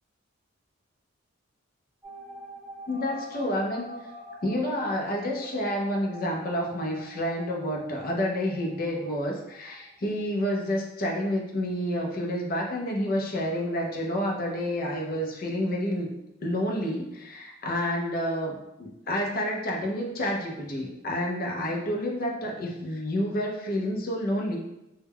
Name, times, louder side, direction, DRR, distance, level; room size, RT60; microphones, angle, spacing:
sound 1, 2.0-10.5 10.8-10.9 11.1-11.2, right 1 dB, 5° right, 0.6 m, -46 dB
voice 1, 2.9-3.9 4.4-16.1 16.4-24.6, equal, 50° left, 0 dB, 0.5 m, -29 dB
2.2 x 2.1 x 3.4 m, 0.90 s
head